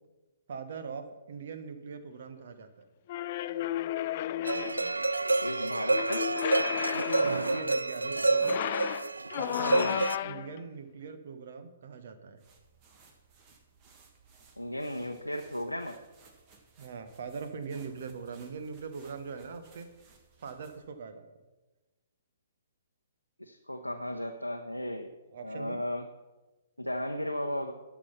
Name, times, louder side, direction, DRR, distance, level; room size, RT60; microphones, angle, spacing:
voice 1, 0.5-2.8 7.0-8.6 9.3-9.9 10.2-12.4 16.8-19.9 20.4-21.3 25.3-25.8, right 5 dB, 50° right, 8 dB, 1.2 m, -41 dB
sound 1, 3.1-4.9 5.9-7.7 8.3-10.6, left 13 dB, 40° left, 0.3 m, -33 dB
sound 2, 4.5-10.2, right 3 dB, 75° right, 0.3 m, -28 dB
voice 2, 5.4-6.3 9.7-10.1 14.6-16.0 23.4-25.1 25.4-26.0 26.8-27.7, left 1 dB, 90° left, 3 dB, 0.8 m, -35 dB
sound 3, 12.4-20.9, right 4 dB, 30° right, 1.5 m, -61 dB
12.0 x 6.1 x 5.6 m, 1.2 s
figure-of-eight pair, 125°, 0 cm